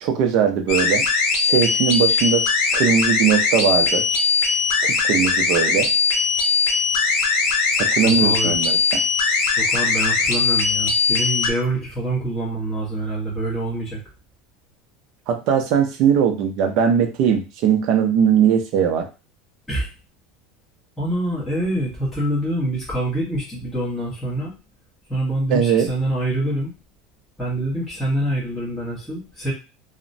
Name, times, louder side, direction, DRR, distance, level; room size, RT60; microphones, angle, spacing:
voice 1, 0.0-1.0 1.4-2.5 2.7-4.0 4.8-5.9 7.8-9.0 15.3-19.1 25.5-25.9, right 8 dB, 45° right, 5 dB, 0.5 m, -20 dB
sound 1, 0.7-11.5, left 5 dB, 65° left, 0.7 m, -20 dB
voice 2, 8.0-8.5 9.6-14.0 19.7-19.9 21.0-24.5 25.1-26.7 27.4-29.5, right 1 dB, 5° left, -9 dB, 1.0 m, -25 dB
2.9 x 2.0 x 2.6 m, 0.30 s
cardioid pair, 175°, 0 cm